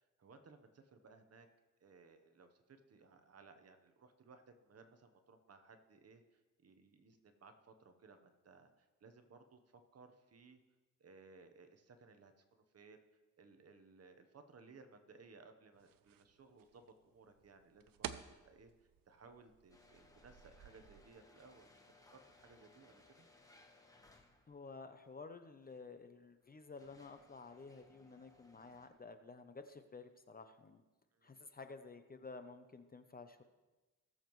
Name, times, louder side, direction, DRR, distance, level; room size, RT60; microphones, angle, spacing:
voice 1, 0.2-1.5 1.8-10.6 11.0-13.0 13.4-18.1 18.4-18.7 19.1-21.7 22.1-23.3 31.1-31.4, right 4 dB, 45° right, 7 dB, 1.0 m, -61 dB
sound 1, 15.7-21.1, right 10 dB, 80° right, 0.6 m, -52 dB
sound 2, 19.7-24.7 25.6-25.7 26.4-28.9, left 2 dB, 10° left, 1.1 m, -66 dB
voice 2, 24.5-30.8 31.2-33.4, left 4 dB, 25° left, 9 dB, 0.6 m, -53 dB
18.5 x 7.2 x 3.1 m, 1.2 s
cardioid pair, 110°, 34 cm